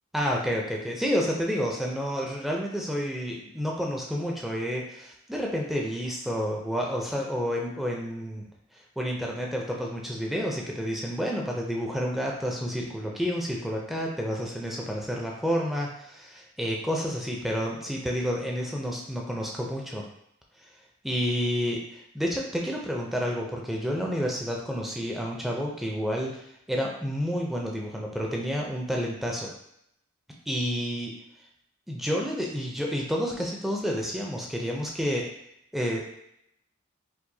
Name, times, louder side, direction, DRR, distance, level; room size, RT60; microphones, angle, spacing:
voice 1, 0.1-8.4 9.0-20.0 21.0-29.5 30.5-31.1 31.9-35.3 35.7-36.2, equal, ahead, -2 dB, 0.4 m, -30 dB
4.6 x 2.0 x 2.7 m, 0.76 s
head